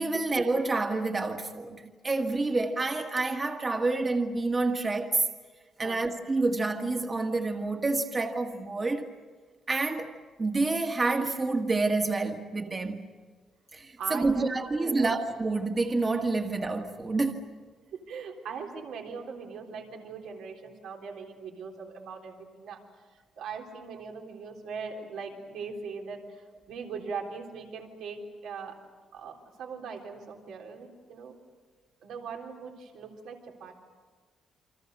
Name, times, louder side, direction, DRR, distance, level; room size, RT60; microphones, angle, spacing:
voice 1, 0.0-5.2 5.8-9.1 9.7-10.1 10.4-13.1 13.7-17.4, right 3 dB, 25° right, 1.6 m, -28 dB
voice 2, 14.0-15.2 17.9-22.8 23.4-28.8 29.1-31.4 32.0-33.8, right 5 dB, 85° right, 3.6 m, -40 dB
29.0 x 25.0 x 6.7 m
cardioid pair, 120°, 0 cm